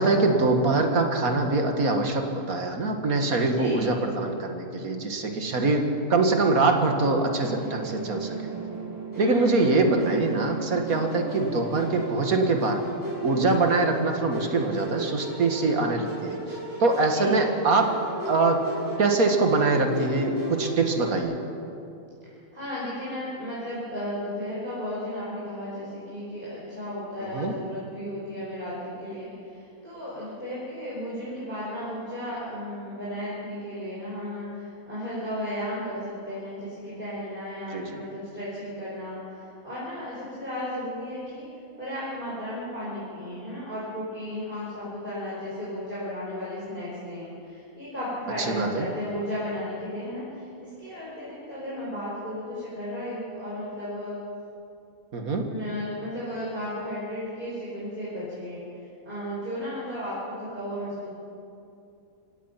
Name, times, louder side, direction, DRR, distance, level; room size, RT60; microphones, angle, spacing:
voice 1, 0.0-8.4 9.2-12.8 13.2-17.9 18.3-18.6 19.0-21.4 27.2-27.5 37.7-38.0 48.4-48.9 55.1-55.5, right 3 dB, 80° right, 4 dB, 2.3 m, -24 dB
voice 2, 3.4-3.9 9.1-9.6 17.1-17.3 22.5-41.4 41.8-54.2 55.5-58.6 59.0-61.1, equal, 35° right, -8 dB, 5.4 m, -34 dB
Musical instrument, 7.4-21.2, right 3 dB, 15° right, 5.5 m, -36 dB
26.5 x 17.0 x 5.9 m, 2.6 s
omnidirectional pair, 1.5 m